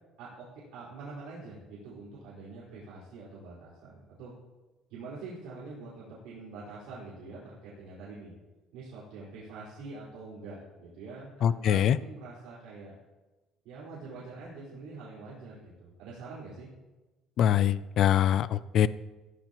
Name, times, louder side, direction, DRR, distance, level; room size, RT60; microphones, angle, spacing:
voice 1, 0.2-4.3 4.9-8.3 8.7-12.9 13.6-16.7, right 3 dB, 90° right, -8 dB, 4.8 m, -45 dB
voice 2, 11.4-12.0 17.4-18.9, left 10 dB, 45° left, 16 dB, 0.3 m, -23 dB
16.0 x 14.5 x 3.0 m, 1.1 s
cardioid pair, 180°, 0 cm